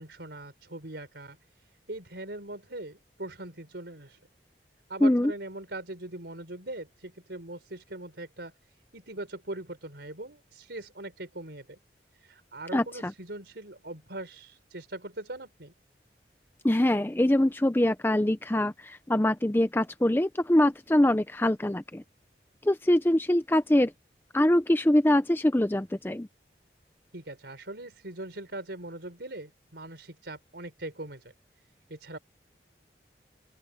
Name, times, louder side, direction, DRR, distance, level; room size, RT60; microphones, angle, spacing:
voice 1, 0.0-1.4 1.9-4.2 4.9-8.5 8.9-11.8 12.2-15.7 27.1-31.3 31.9-32.2, right 2 dB, 80° right, 4.0 m, -41 dB
voice 2, 5.0-5.3 12.7-13.1 16.6-22.0 22.6-23.9 24.3-26.3, left 1 dB, 10° left, 0.5 m, -24 dB
open air
head